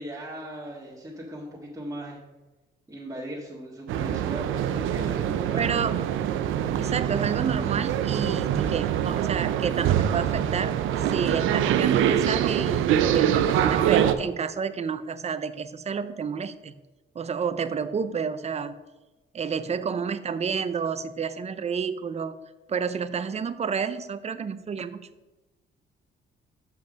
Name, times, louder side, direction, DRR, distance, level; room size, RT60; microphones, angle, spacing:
voice 1, 0.0-2.2 2.9-5.8, right 1 dB, 15° right, -7 dB, 1.7 m, -38 dB
sound 1, 3.9-14.1, right 10 dB, 85° right, 0.5 m, -24 dB
voice 2, 5.5-6.0 6.8-16.7 17.1-18.8 19.3-22.4 22.7-25.1, right 6 dB, 35° right, 12 dB, 0.5 m, -30 dB
7.2 x 5.7 x 5.1 m, 1.1 s
cardioid pair, 90°, 20 cm